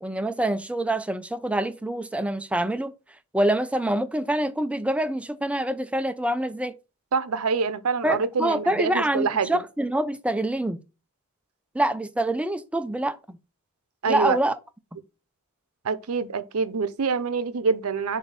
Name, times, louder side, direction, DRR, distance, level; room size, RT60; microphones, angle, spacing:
voice 1, 0.0-2.9 3.3-6.7 8.0-10.8 11.7-13.4 14.1-14.5, right 1 dB, 5° right, 0.4 m, -26 dB
voice 2, 7.1-9.6 14.0-14.4 15.8-18.2, right 5 dB, 85° right, 0.6 m, -26 dB
7.2 x 2.7 x 5.5 m
head